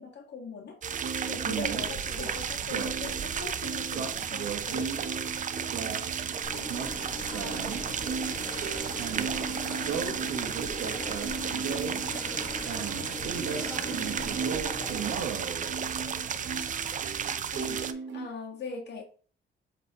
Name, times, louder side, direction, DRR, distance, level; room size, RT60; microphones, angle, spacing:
voice 1, 0.0-5.1 17.5-19.0, left 4 dB, 60° left, 1.7 m, -41 dB
sound 1, 0.8-17.9, right 7 dB, 40° right, 0.5 m, -34 dB
sound 2, 0.9-18.3, right 6 dB, 75° right, 1.3 m, -36 dB
voice 2, 6.3-6.6 7.3-13.4 13.7-16.9, equal, 15° right, 2.6 m, -49 dB
sound 3, 6.4-15.2, left 2 dB, 25° left, 1.4 m, -40 dB
7.8 x 4.1 x 3.0 m
cardioid pair, 90°, 20 cm